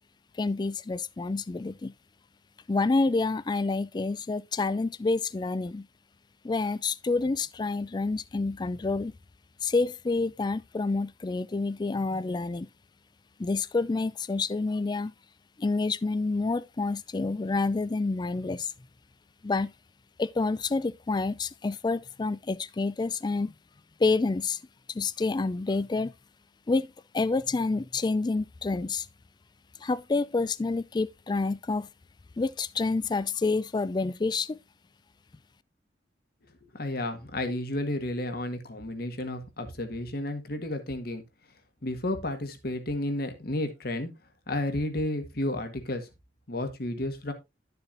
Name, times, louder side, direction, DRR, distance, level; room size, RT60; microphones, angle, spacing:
voice 1, 0.4-1.9 2.7-5.9 6.4-9.1 9.6-12.7 13.4-15.1 15.6-18.7 19.4-19.7 20.2-23.5 24.0-24.6 24.9-26.1 26.7-26.9 27.1-29.1 29.8-31.9 32.4-34.6, left 3 dB, 25° left, 0.3 m, -28 dB
voice 2, 36.7-41.2 41.8-44.1 44.5-46.1 46.5-47.3, left 1 dB, 60° left, 1.7 m, -32 dB
11.5 x 6.8 x 2.6 m
head